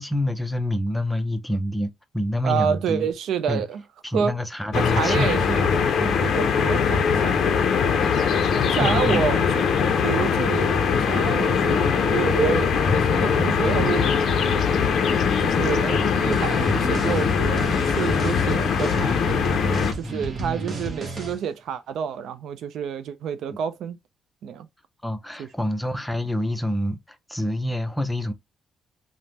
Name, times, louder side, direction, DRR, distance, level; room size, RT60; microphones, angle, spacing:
voice 1, 0.0-3.1 3.5-3.7 4.0-5.6 6.0-6.2 8.8-9.2 20.0-20.3 25.0-28.3, left 1 dB, 5° left, 0.5 m, -27 dB
voice 2, 2.4-3.8 4.1-4.3 4.8-5.7 6.2-7.6 7.9-8.0 8.7-9.6 10.0-14.7 15.4-19.2 19.8-24.0 24.4-24.7 25.4-25.5, right 8 dB, 75° right, 0.3 m, -28 dB
sound 1, 4.7-19.9, left 6 dB, 65° left, 0.4 m, -21 dB
sound 2, 16.2-21.4, right 2 dB, 40° right, 0.8 m, -32 dB
3.2 x 2.0 x 2.7 m
cardioid pair, 90°, 0 cm